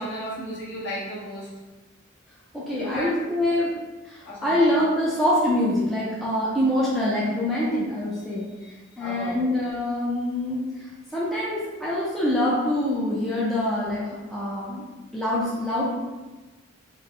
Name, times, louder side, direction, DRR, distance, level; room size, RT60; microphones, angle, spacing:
voice 1, 0.0-1.5 2.7-3.1 4.2-4.7 9.0-9.5, equal, 55° left, -8 dB, 1.2 m, -34 dB
voice 2, 2.5-3.7 4.0-14.8 15.1-16.1, left 1 dB, ahead, -8 dB, 0.4 m, -25 dB
3.7 x 2.1 x 3.7 m, 1.2 s
head